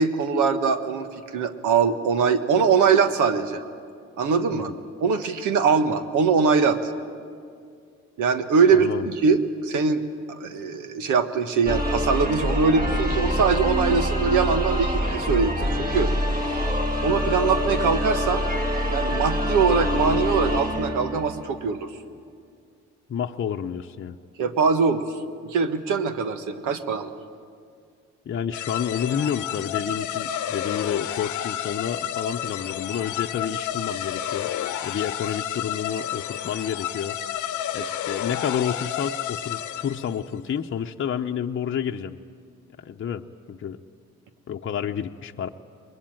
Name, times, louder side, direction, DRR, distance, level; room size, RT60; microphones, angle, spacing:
voice 1, 0.0-3.6 4.2-4.7 5.0-6.9 8.2-16.1 16.4-18.4 18.9-22.0 24.4-27.1, right 5 dB, 85° right, 9 dB, 1.5 m, -22 dB
voice 2, 8.7-9.1 23.1-24.2 28.3-34.5 34.8-37.2 37.7-42.2 42.8-43.8 44.5-45.5, left 8 dB, 40° left, 3 dB, 0.9 m, -29 dB
Epic Orchestra Music, 11.7-21.6, equal, 30° right, 3.2 m, -25 dB
sound 1, 28.5-40.2, left 10 dB, 75° left, 0.9 m, -31 dB
22.5 x 21.0 x 9.0 m, 2.3 s
cardioid pair, 90°, 30 cm